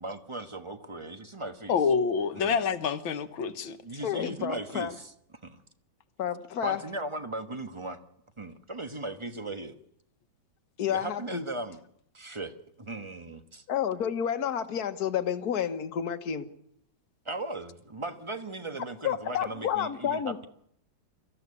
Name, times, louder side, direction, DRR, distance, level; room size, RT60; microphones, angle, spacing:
voice 1, 0.0-1.8 2.4-2.6 3.8-5.1 5.4-5.6 6.6-8.0 8.4-9.7 10.9-11.8 12.1-13.6 17.2-20.5, right 2 dB, 20° right, 8 dB, 1.0 m, -37 dB
voice 2, 1.7-3.8, left 6 dB, 80° left, 10 dB, 2.0 m, -27 dB
voice 3, 4.0-4.9 6.2-6.8 10.8-11.4 13.7-16.5 19.0-20.5, left 9 dB, 55° left, 9 dB, 1.7 m, -30 dB
23.5 x 15.0 x 9.7 m, 0.72 s
omnidirectional pair, 2.1 m